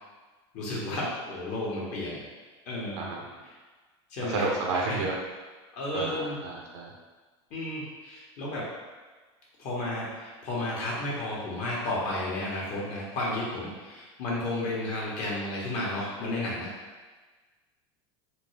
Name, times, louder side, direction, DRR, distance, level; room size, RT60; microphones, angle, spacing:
voice 1, 0.5-2.2 2.7-3.1 3.4-3.5 4.1-4.5 4.7-5.0 5.7-6.4 7.5-8.7 9.6-16.7, left 1 dB, 55° left, -5 dB, 1.3 m, -32 dB
voice 2, 2.9-3.3 4.3-5.2 5.9-6.9, right 3 dB, 80° right, -1 dB, 0.7 m, -31 dB
3.6 x 2.3 x 3.2 m, 1.3 s
supercardioid pair, 110°, 14 cm